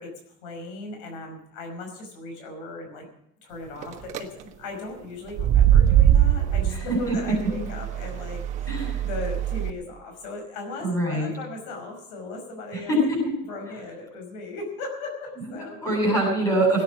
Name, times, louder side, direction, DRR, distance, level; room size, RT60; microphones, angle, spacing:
voice 1, 0.0-3.1 3.4-8.7 9.0-13.0 13.5-15.8, left 2 dB, 75° left, 3 dB, 5.4 m, -37 dB
sound 1, 3.8-4.2 5.3-9.7, right 10 dB, 35° right, 1.2 m, -22 dB
voice 2, 6.7-7.1 8.7-9.0 10.8-11.3 12.7-13.3 15.6-16.8, right 1 dB, 15° left, -1 dB, 8.0 m, -24 dB
18.0 x 9.6 x 6.1 m, 0.78 s
cardioid pair, 175°, 21 cm